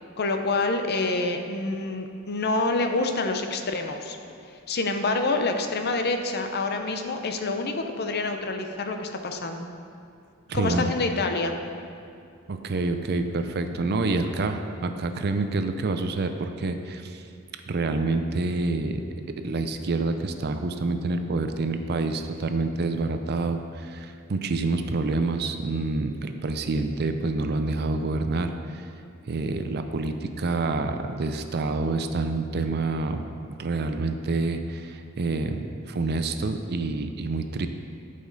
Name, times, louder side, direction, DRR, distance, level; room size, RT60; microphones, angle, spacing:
voice 1, 0.2-4.2 4.7-9.7 10.5-11.6, left 3 dB, 50° left, 5 dB, 0.7 m, -27 dB
voice 2, 10.5-10.9 12.5-17.2 17.7-19.0 19.4-28.8 29.3-37.7, right 3 dB, 50° right, 7 dB, 0.5 m, -27 dB
12.5 x 5.1 x 4.0 m, 2.5 s
head